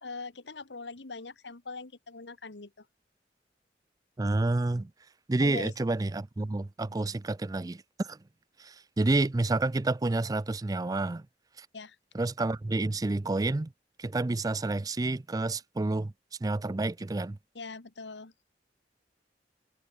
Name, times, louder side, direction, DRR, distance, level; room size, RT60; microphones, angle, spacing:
voice 1, 0.0-2.9 5.4-5.7 11.7-12.0 17.5-18.3, left 3 dB, 85° left, 1.4 m, -42 dB
voice 2, 4.2-4.9 5.3-8.2 8.6-11.3 11.6-11.7 12.1-13.7 14.0-16.1 16.4-17.4, right 2 dB, 20° right, 0.4 m, -29 dB
head